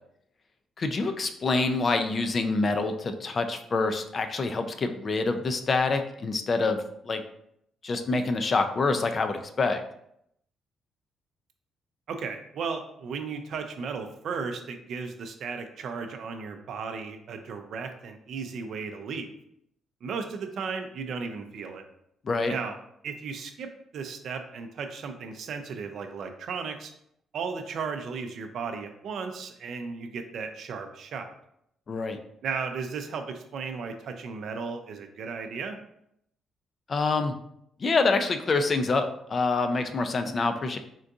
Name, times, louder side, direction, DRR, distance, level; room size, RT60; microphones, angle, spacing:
voice 1, 0.8-7.2 7.8-9.8 22.2-22.5 31.9-32.2 36.9-37.4 37.8-40.8, left 3 dB, 40° left, 7 dB, 0.3 m, -26 dB
voice 2, 12.1-19.3 20.0-21.8 22.5-22.8 23.0-26.9 27.3-31.3 32.4-35.8, right 5 dB, 70° right, 6 dB, 0.4 m, -35 dB
3.7 x 2.6 x 2.3 m, 0.74 s
cardioid pair, 90°, 0 cm